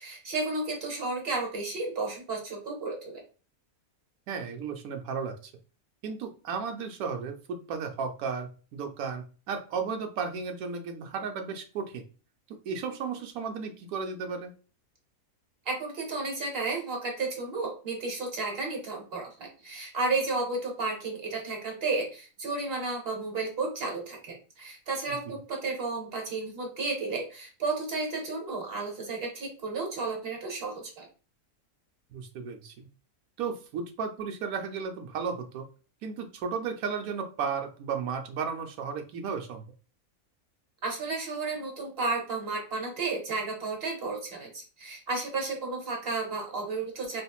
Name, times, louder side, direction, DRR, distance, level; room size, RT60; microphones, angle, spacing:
voice 1, 0.0-3.2 15.6-31.1 40.8-47.2, right 3 dB, 45° right, 1 dB, 1.0 m, -32 dB
voice 2, 4.3-5.5 6.0-12.0 12.5-14.5 25.1-25.3 32.1-32.9 33.4-35.6 36.0-39.6, right 5 dB, 80° right, 4 dB, 1.0 m, -34 dB
3.5 x 2.4 x 2.3 m, 0.36 s
omnidirectional pair, 1.5 m